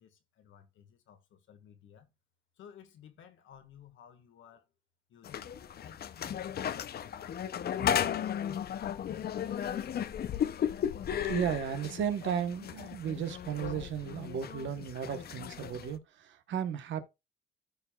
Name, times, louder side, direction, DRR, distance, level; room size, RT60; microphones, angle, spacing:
voice 1, 0.0-2.1 2.6-4.6 5.1-5.5 5.8-10.2, left 8 dB, 75° left, 1.6 m, -57 dB
sound 1, 5.2-16.0, left 9 dB, 50° left, 0.6 m, -35 dB
voice 2, 11.3-17.0, right 8 dB, 70° right, 1.1 m, -34 dB
14.0 x 4.8 x 2.3 m
cardioid pair, 90°, 20 cm